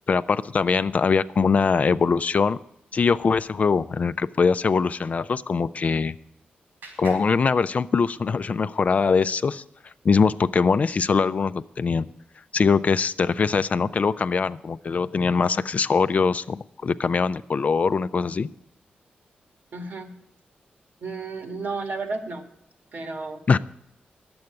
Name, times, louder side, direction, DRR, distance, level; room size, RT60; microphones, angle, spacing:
voice 1, 0.1-2.6 2.9-6.1 7.0-9.6 10.0-12.1 12.5-18.5 23.5-23.6, left 5 dB, 45° left, 14 dB, 0.4 m, -22 dB
Clapping, 5.7-8.3, right 2 dB, 85° right, 4.6 m, -49 dB
voice 2, 19.7-20.1 21.0-22.4 22.9-23.4, right 3 dB, 65° right, 6 dB, 1.8 m, -32 dB
10.5 x 7.8 x 9.6 m, 0.76 s
cardioid pair, 90°, 3 cm